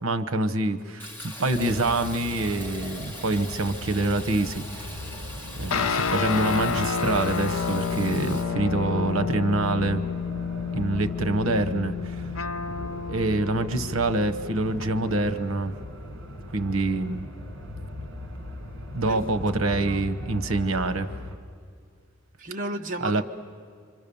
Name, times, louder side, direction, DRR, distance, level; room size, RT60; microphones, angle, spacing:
voice 1, 0.0-4.9 5.6-10.0 10.7-12.2 13.1-15.7 16.5-17.3 18.9-21.1 23.0-23.2, right 2 dB, 80° right, 9 dB, 1.0 m, -26 dB
Fill (with liquid), 1.0-8.4, left 1 dB, 10° left, 2.1 m, -41 dB
sound 1, 1.5-21.4, left 1 dB, 60° right, 2.1 m, -39 dB
sound 2, 5.7-15.4, left 6 dB, 85° left, 0.7 m, -30 dB
voice 2, 19.7-20.1 22.4-23.2, right 1 dB, 40° right, 3 dB, 0.9 m, -33 dB
27.5 x 25.5 x 7.0 m, 2.2 s
head